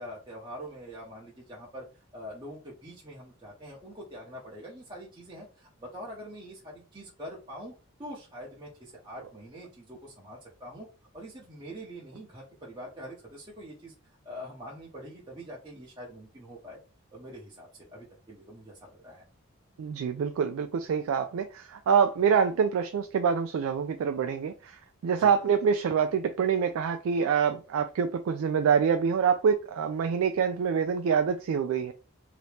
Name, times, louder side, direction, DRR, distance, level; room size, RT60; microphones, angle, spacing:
voice 1, 0.0-7.7 8.0-10.9 11.1-13.9 14.2-16.8 17.1-19.2 25.1-25.3, equal, 20° right, 0.8 m, -44 dB
voice 2, 19.8-31.9, right 6 dB, 80° right, 0.3 m, -26 dB
2.9 x 2.7 x 3.3 m
head